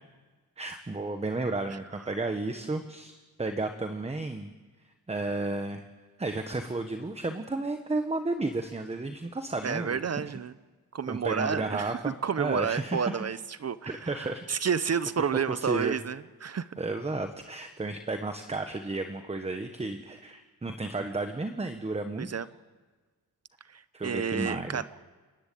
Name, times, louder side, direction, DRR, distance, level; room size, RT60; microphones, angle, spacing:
voice 1, 0.6-4.5 5.1-5.8 6.2-10.0 11.1-13.2 13.8-14.4 14.8-14.9 15.5-16.0 16.8-22.3 23.9-24.8, right 2 dB, 15° right, 7 dB, 1.1 m, -33 dB
voice 2, 9.6-10.5 10.9-16.7 22.2-22.5 23.7-24.8, right 7 dB, 45° right, 15 dB, 0.6 m, -30 dB
29.0 x 11.0 x 8.5 m, 1.4 s
wide cardioid pair, 120°, 37 cm